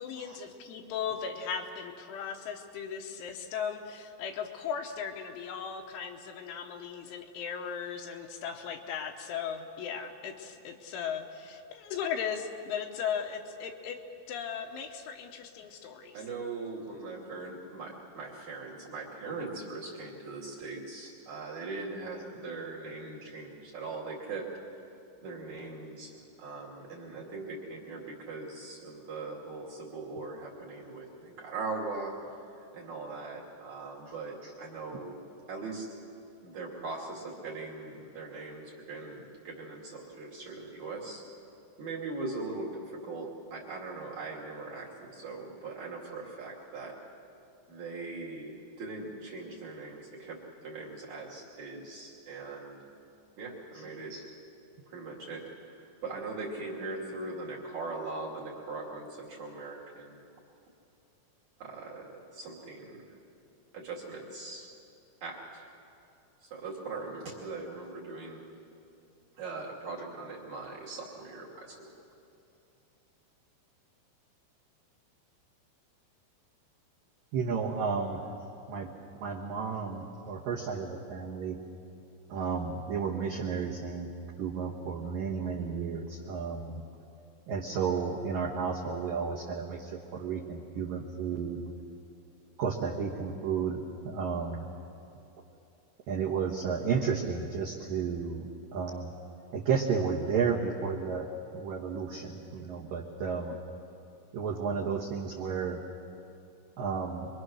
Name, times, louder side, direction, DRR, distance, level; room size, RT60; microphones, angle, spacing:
voice 1, 0.0-14.0 14.3-16.2, left 7 dB, 75° left, 4 dB, 3.4 m, -37 dB
voice 2, 16.1-24.8 25.2-35.2 35.5-35.9 36.4-41.2 41.8-46.9 47.7-52.8 53.4-54.2 54.9-60.2 61.6-63.1 63.7-64.7 65.2-65.7 66.4-68.4 69.4-71.9, right 3 dB, 45° right, -4 dB, 3.1 m, -40 dB
voice 3, 77.3-78.2 78.7-78.9 79.2-81.6 82.3-84.1 84.4-86.8 87.5-91.6 92.6-94.7 96.1-99.1 99.5-101.3 101.5-103.6 104.3-105.8 106.8-107.3, right 6 dB, 70° right, -2 dB, 2.1 m, -32 dB
28.0 x 22.5 x 6.3 m, 2.7 s
omnidirectional pair, 5.9 m